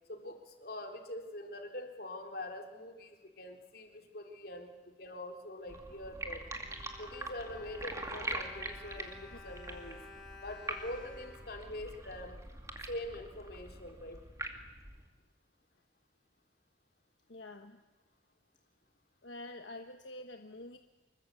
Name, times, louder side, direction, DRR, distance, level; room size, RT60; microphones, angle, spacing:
voice 1, 0.1-6.4 7.0-10.0 10.4-12.4 12.9-14.2, left 1 dB, 55° left, 3 dB, 3.6 m, -44 dB
sound 1, 5.7-15.1, right 2 dB, 15° right, 2.4 m, -44 dB
Bowed string instrument, 6.1-12.4 13.1-13.2 13.5-13.6, left 3 dB, 5° left, 4.3 m, -54 dB
voice 2, 17.3-17.8 19.2-20.8, left 2 dB, 80° left, 5 dB, 1.3 m, -47 dB
26.0 x 22.5 x 8.4 m, 1.1 s
head